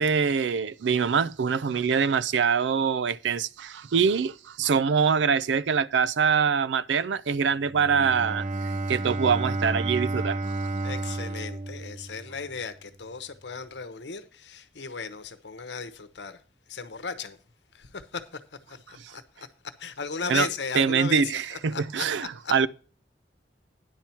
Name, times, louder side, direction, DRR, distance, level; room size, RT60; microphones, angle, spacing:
voice 1, 0.0-10.5 19.0-19.1 20.3-20.5 20.7-22.7, right 6 dB, 90° right, 0.4 m, -24 dB
Bowed string instrument, 7.7-12.6, right 2 dB, 40° right, 0.8 m, -31 dB
voice 2, 10.8-16.4 16.7-17.4 17.7-18.4 18.7-19.5 19.8-22.5, left 5 dB, 80° left, 1.0 m, -36 dB
10.0 x 4.5 x 7.0 m
head